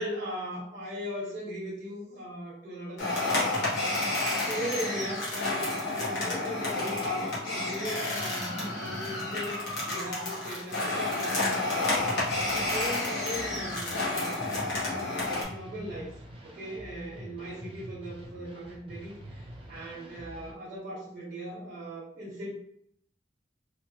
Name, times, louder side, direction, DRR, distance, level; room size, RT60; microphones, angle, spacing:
voice 1, 0.0-3.4 4.4-9.6 9.8-12.2 12.5-16.1 16.4-22.5, equal, 60° right, -6 dB, 0.9 m, -39 dB
sound 1, 3.0-15.4, left 2 dB, 70° left, 1.1 m, -30 dB
sound 2, 11.9-20.5, equal, 30° right, 0.5 m, -46 dB
3.0 x 2.2 x 2.7 m, 0.69 s
head